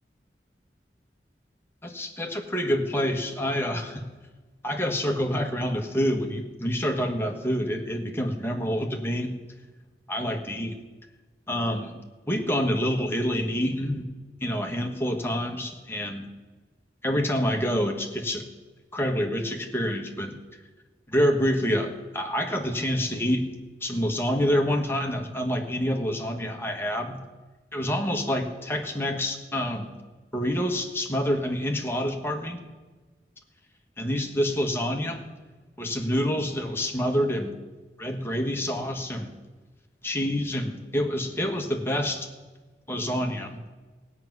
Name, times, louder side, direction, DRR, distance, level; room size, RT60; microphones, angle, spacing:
voice 1, 1.8-4.0 4.6-9.3 10.1-10.8 11.5-12.0 12.3-14.1 14.4-16.2 17.0-18.4 18.9-20.4 21.1-23.5 23.8-27.2 27.7-29.9 30.3-32.6 34.0-35.2 35.8-37.5 38.0-39.3 40.0-42.3 42.9-43.6, equal, 15° left, 3 dB, 1.5 m, -27 dB
16.5 x 6.1 x 9.4 m, 1.3 s
head